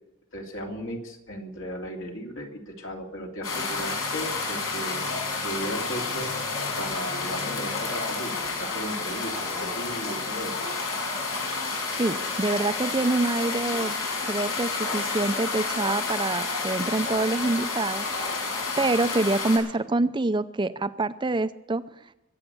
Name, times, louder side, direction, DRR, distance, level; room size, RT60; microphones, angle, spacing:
voice 1, 0.3-5.1 5.4-6.3 6.8-10.5, equal, 65° left, 1 dB, 2.9 m, -36 dB
sound 1, 3.4-19.6, left 3 dB, 85° left, 6.0 m, -30 dB
voice 2, 12.0-14.0 14.2-18.1 18.8-21.8, right 2 dB, 20° right, 13 dB, 0.6 m, -26 dB
23.0 x 8.3 x 6.9 m, 0.92 s
head